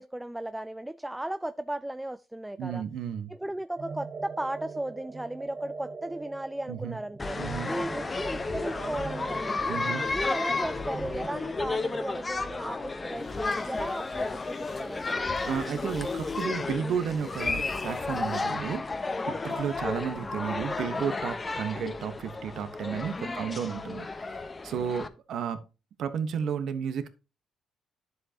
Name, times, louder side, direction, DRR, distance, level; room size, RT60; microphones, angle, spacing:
voice 1, 0.0-2.8 3.3-7.4 7.7-9.8 10.1-15.3 23.2-23.5, right 1 dB, 10° right, 0.4 m, -36 dB
voice 2, 2.6-3.3 6.7-7.0 7.4-7.7 9.7-10.0 15.4-18.9 19.3-25.6 26.0-27.1, right 7 dB, 70° right, 1.2 m, -33 dB
sound 1, 3.8-12.1, right 4 dB, 40° right, 0.9 m, -42 dB
sound 2, 7.2-25.1, left 3 dB, 25° left, 1.0 m, -32 dB
sound 3, 13.1-18.4, left 4 dB, 45° left, 1.8 m, -52 dB
10.5 x 7.7 x 2.9 m
cardioid pair, 90°, 0 cm